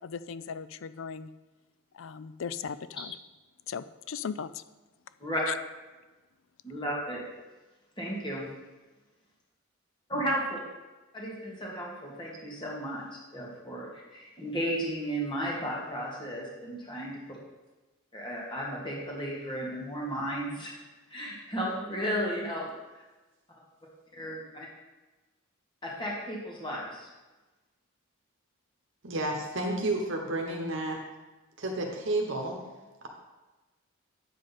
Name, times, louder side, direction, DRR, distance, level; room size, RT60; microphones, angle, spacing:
voice 1, 0.0-1.3 1.9-3.2 3.7-4.6 5.5-5.6, left 6 dB, 65° left, 14 dB, 0.4 m, -37 dB
voice 2, 6.6-7.2 8.0-8.4 10.1-10.4 11.1-13.1 13.3-17.2 18.1-20.7 21.1-22.7 24.2-24.7 25.8-27.1, equal, 20° left, -3 dB, 2.0 m, -34 dB
voice 3, 29.0-31.0 31.6-32.6, right 2 dB, 55° right, 1 dB, 1.1 m, -31 dB
9.1 x 7.5 x 4.2 m, 1.2 s
head